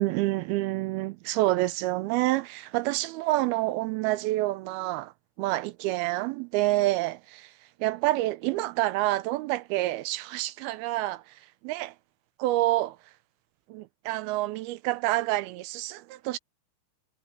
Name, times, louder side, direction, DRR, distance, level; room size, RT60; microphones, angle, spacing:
voice 1, 0.0-5.1 5.4-7.5 7.8-11.9 12.4-13.0 13.7-16.4, right 17 dB, 80° right, 2.4 m, -28 dB
omnidirectional pair, 4.6 m